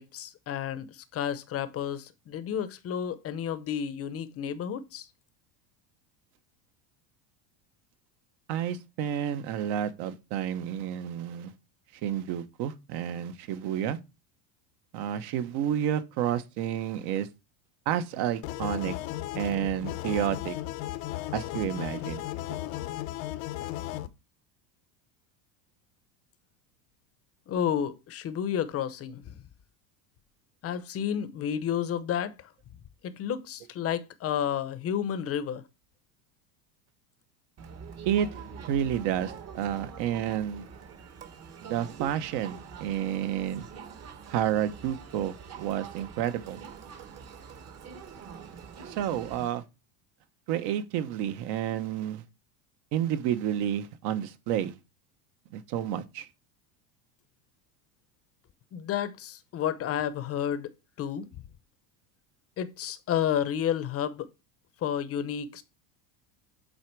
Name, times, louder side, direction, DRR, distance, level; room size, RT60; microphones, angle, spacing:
voice 1, 0.0-5.1 27.5-29.4 30.6-32.3 33.0-35.6 58.7-60.7 61.0-61.3 62.6-64.3 64.8-65.6, left 9 dB, 30° left, 0.8 m, -31 dB
voice 2, 8.5-11.5 12.0-14.0 14.9-17.3 17.9-18.9 19.3-20.6 21.3-22.2 38.0-38.4 38.7-40.7 41.6-43.7 44.3-46.6 48.8-49.6 50.5-52.2 52.9-54.7 55.5-56.3, right 10 dB, 55° right, 1.1 m, -30 dB
sound 1, 18.4-24.1, left 15 dB, 65° left, 0.9 m, -35 dB
Crowd, 37.6-49.5, right 6 dB, 30° right, 1.2 m, -45 dB
8.1 x 3.9 x 4.6 m
supercardioid pair, 135°, 48 cm